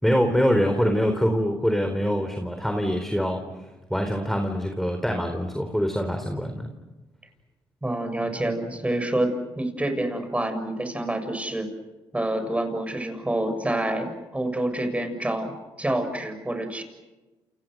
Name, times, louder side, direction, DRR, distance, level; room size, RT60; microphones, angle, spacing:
voice 1, 0.0-3.4 3.9-6.7, equal, 5° left, 5 dB, 4.1 m, -24 dB
voice 2, 7.8-11.7 12.1-15.5 15.8-16.8, right 1 dB, 15° right, 7 dB, 6.8 m, -27 dB
29.5 x 29.0 x 6.5 m, 1.1 s
supercardioid pair, 65°, 10 cm